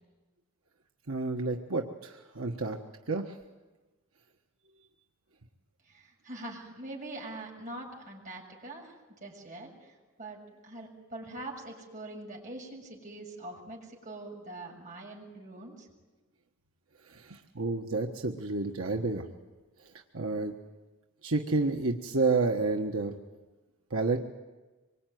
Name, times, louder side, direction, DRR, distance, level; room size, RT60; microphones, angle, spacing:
voice 1, 1.1-2.8 3.1-3.4 17.0-19.3 19.8-20.5 21.2-23.1 23.9-24.2, right 3 dB, 80° right, 2 dB, 1.5 m, -30 dB
voice 2, 5.9-8.9 9.2-15.9, right 2 dB, 40° right, -1 dB, 6.9 m, -43 dB
25.5 x 24.0 x 9.4 m, 1.2 s
head